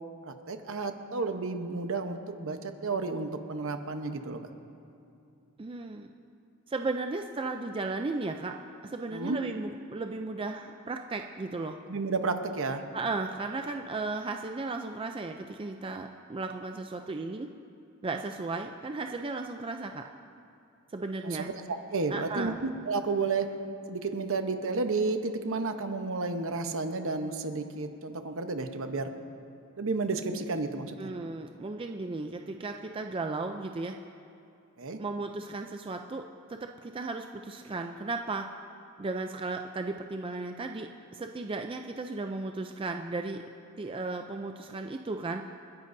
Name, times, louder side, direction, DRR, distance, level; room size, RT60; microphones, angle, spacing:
voice 1, 0.2-4.4 9.1-9.4 11.9-12.8 21.2-23.5 23.9-29.1 29.8-31.1 34.8-35.0, right 3 dB, 60° right, 6 dB, 0.9 m, -32 dB
voice 2, 5.6-6.1 6.7-8.5 8.8-11.8 12.9-17.5 18.0-20.1 20.9-21.5 22.1-22.6 31.0-34.0 35.0-36.2 36.5-38.5 39.0-43.4 43.8-45.4, right 3 dB, 25° right, 5 dB, 0.4 m, -35 dB
29.5 x 10.5 x 2.7 m, 2.7 s
head